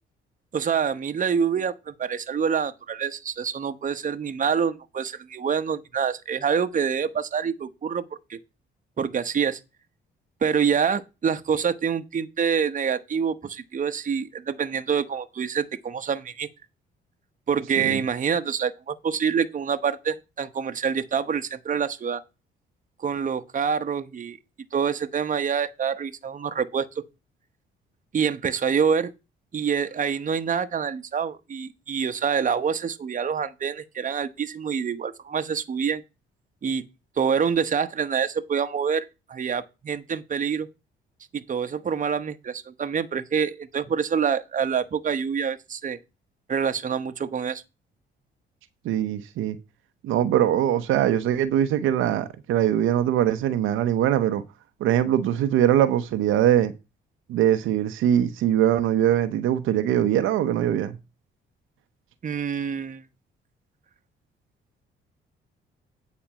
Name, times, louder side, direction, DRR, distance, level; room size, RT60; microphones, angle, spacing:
voice 1, 0.5-8.0 8.3-8.4 9.0-9.6 10.4-16.5 17.5-22.2 23.0-24.4 24.7-27.0 28.1-29.1 29.5-36.0 36.6-36.8 37.2-40.7 41.3-46.0 46.5-47.6 62.2-63.0, right 7 dB, 40° right, 1.0 m, -26 dB
voice 2, 48.8-49.6 50.0-54.4 54.8-56.7 57.3-61.0, right 11 dB, 85° right, 0.9 m, -22 dB
8.9 x 4.2 x 7.3 m
cardioid pair, 90°, 20 cm